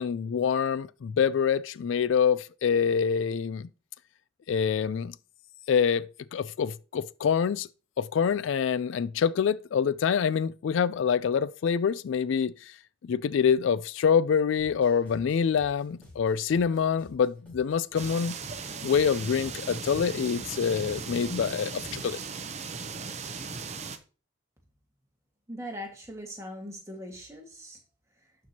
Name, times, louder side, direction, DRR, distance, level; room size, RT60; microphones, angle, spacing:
voice 1, 0.0-3.7 4.5-5.1 5.7-6.1 6.3-7.7 8.0-12.8 13.0-18.4 18.8-22.2, left 7 dB, 75° left, 0.3 m, -26 dB
sound 1, 14.6-22.3, left 1 dB, 5° left, 4.4 m, -54 dB
sound 2, 18.0-24.0, right 4 dB, 35° right, 0.6 m, -37 dB
voice 2, 25.5-27.8, equal, 15° right, 1.6 m, -40 dB
12.0 x 4.6 x 2.8 m
head